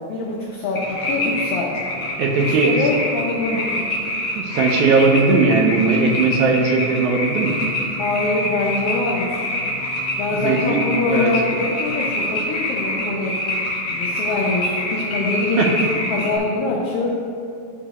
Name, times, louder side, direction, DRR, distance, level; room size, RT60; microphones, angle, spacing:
voice 1, 0.1-1.8 2.3-3.8 8.0-9.5 10.2-13.4 13.9-15.8 16.1-17.1, left 3 dB, 70° left, -4 dB, 1.5 m, -24 dB
sound 1, 0.7-16.4, left 1 dB, 50° left, 2.2 m, -25 dB
voice 2, 2.2-2.7 3.5-3.6 4.3-7.6 10.3-10.8 11.1-11.3 15.6-15.7, right 4 dB, 90° right, 1 dB, 2.2 m, -18 dB
10.5 x 4.5 x 3.0 m, 2.4 s
omnidirectional pair, 3.4 m